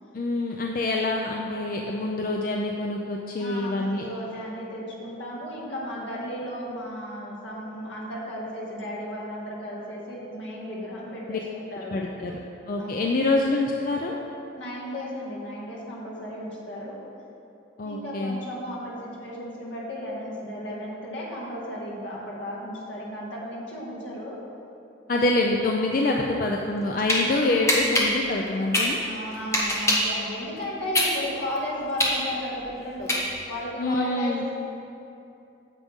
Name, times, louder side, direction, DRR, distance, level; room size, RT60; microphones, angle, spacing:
voice 1, 0.1-4.0 11.3-11.4 11.9-12.3 12.7-14.1 17.8-18.4 25.1-29.0 33.8-34.4, left 2 dB, 50° left, 0 dB, 0.5 m, -26 dB
voice 2, 3.4-11.9 12.8-13.1 14.5-17.0 17.8-24.4 27.2-27.6 29.0-33.1 33.5-34.5, equal, 80° left, -6 dB, 2.1 m, -34 dB
sound 1, 26.6-27.2 27.7-30.2 30.6-33.6, left 1 dB, 15° left, 1.0 m, -24 dB
9.0 x 7.4 x 3.6 m, 2.8 s
head